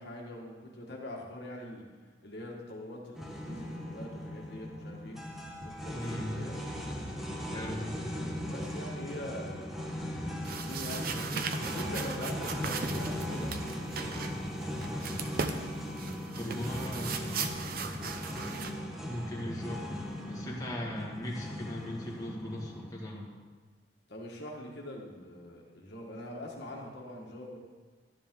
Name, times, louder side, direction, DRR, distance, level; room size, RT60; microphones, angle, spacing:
voice 1, 0.0-1.8 2.2-5.2 5.6-6.6 7.5-8.0 8.5-14.5 24.1-27.6, left 1 dB, 65° left, -2 dB, 1.5 m, -44 dB
sound 1, 3.1-22.9, equal, ahead, 1.2 m, -38 dB
voice 2, 6.0-6.4 7.5-7.9 16.2-17.5 19.1-20.0 20.3-23.3, left 1 dB, 20° left, -4 dB, 1.9 m, -39 dB
sound 2, 10.4-18.7, right 5 dB, 55° right, 0.7 m, -38 dB
12.0 x 10.5 x 3.7 m, 1.4 s
head